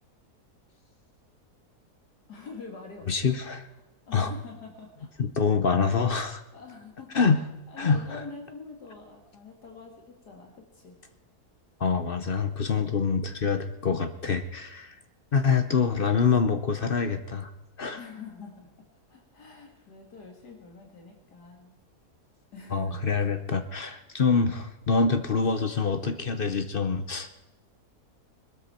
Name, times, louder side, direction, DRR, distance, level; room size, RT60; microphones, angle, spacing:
voice 1, 2.3-3.4 4.1-5.1 6.5-7.1 7.7-11.0 12.7-12.9 15.5-15.8 17.9-18.7 19.1-21.7 22.5-23.0, left 4 dB, 85° left, 1 dB, 2.7 m, -45 dB
voice 2, 3.1-3.6 4.1-4.3 5.2-6.4 7.1-7.4 7.8-8.2 11.8-14.9 15.3-17.5 17.8-18.0 22.7-27.3, left 5 dB, 45° left, 9 dB, 0.8 m, -25 dB
21.5 x 13.0 x 4.4 m, 0.97 s
omnidirectional pair, 1.7 m